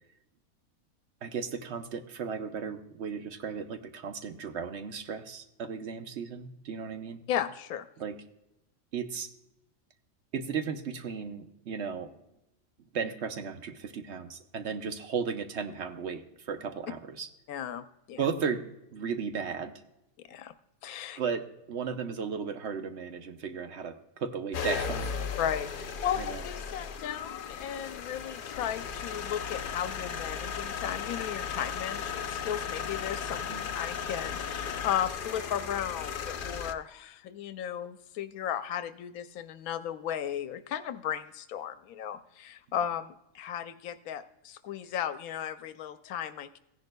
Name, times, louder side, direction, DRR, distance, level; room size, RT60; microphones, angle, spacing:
voice 1, 1.2-7.2 8.0-8.2 8.9-9.3 10.3-12.2 12.9-17.3 18.2-18.7 18.9-19.8 21.2-25.1 26.2-26.4 33.5-33.6, right 6 dB, 55° right, 7 dB, 1.0 m, -35 dB
voice 2, 7.3-7.9 17.5-18.2 20.3-20.5 20.8-21.2 25.4-25.7 26.0-33.4 33.7-46.6, left 10 dB, 85° left, 10 dB, 1.0 m, -35 dB
sound 1, 24.5-36.7, left 6 dB, 55° left, 0.6 m, -36 dB
16.0 x 10.5 x 2.2 m, 0.86 s
omnidirectional pair, 1.5 m